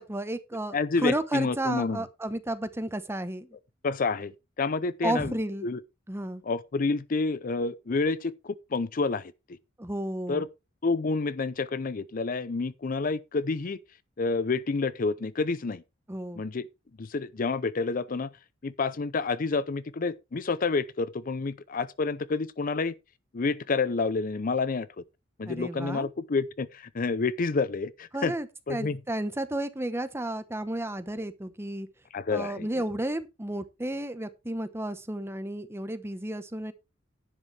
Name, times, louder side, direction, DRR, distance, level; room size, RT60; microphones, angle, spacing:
voice 1, 0.0-3.5 5.0-5.7 6.1-6.4 9.8-10.5 16.1-16.4 25.4-26.1 28.1-31.9 32.3-36.7, right 1 dB, 15° right, 1.0 m, -32 dB
voice 2, 0.7-2.0 3.8-5.4 5.6-5.8 6.4-9.6 10.3-10.5 10.8-13.8 14.2-15.8 16.3-16.7 17.0-18.3 18.6-22.9 23.3-25.0 25.4-28.3 28.7-29.0 32.1-32.7, left 4 dB, 45° left, 0.5 m, -29 dB
11.0 x 10.0 x 3.3 m
head